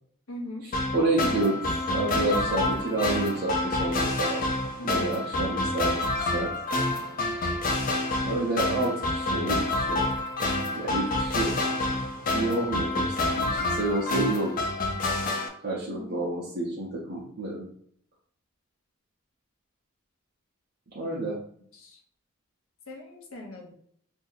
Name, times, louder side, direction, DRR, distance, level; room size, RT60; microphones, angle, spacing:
voice 1, 0.3-0.7 4.8-5.1 15.9-16.2 21.7-22.0 22.9-23.7, left 1 dB, 70° left, 1 dB, 0.8 m, -40 dB
sound 1, 0.7-15.5, left 2 dB, 40° left, 0.5 m, -28 dB
voice 2, 0.9-4.4 4.8-6.5 8.2-10.1 10.8-11.5 12.3-14.6 15.6-17.7 20.9-21.4, right 2 dB, 45° right, -6 dB, 0.7 m, -29 dB
2.7 x 2.7 x 3.9 m, 0.63 s
head